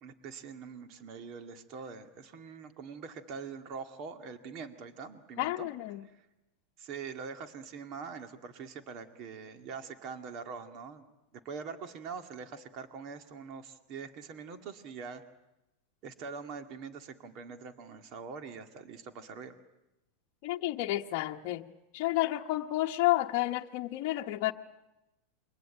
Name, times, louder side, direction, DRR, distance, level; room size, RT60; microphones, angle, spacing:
voice 1, 0.0-5.7 6.8-11.0 11.3-15.2 16.0-19.5, right 5 dB, 40° right, 7 dB, 2.1 m, -43 dB
voice 2, 5.4-6.1 20.4-21.7 21.9-24.5, left 16 dB, 50° left, 2 dB, 1.0 m, -30 dB
28.0 x 23.0 x 9.0 m, 0.96 s
supercardioid pair, 145°, 0 cm